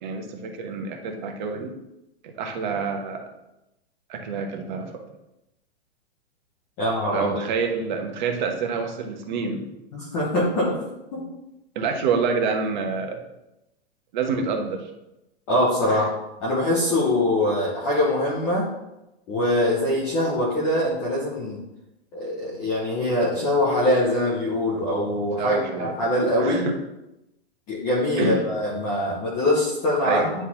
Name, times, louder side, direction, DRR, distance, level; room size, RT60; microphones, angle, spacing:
voice 1, 0.0-1.7 2.2-3.3 4.1-5.0 7.1-9.7 11.7-13.2 14.1-14.9 15.8-16.1 25.4-26.8 28.2-28.4 30.0-30.3, right 5 dB, 45° right, 4 dB, 1.0 m, -28 dB
voice 2, 6.8-7.4 9.9-10.8 11.1-11.2 15.5-16.1 16.4-18.7 19.3-21.6 22.1-26.7 27.7-30.3, left 1 dB, 10° left, -6 dB, 0.3 m, -23 dB
9.4 x 4.1 x 2.8 m, 0.93 s
hypercardioid pair, 155°, 33 cm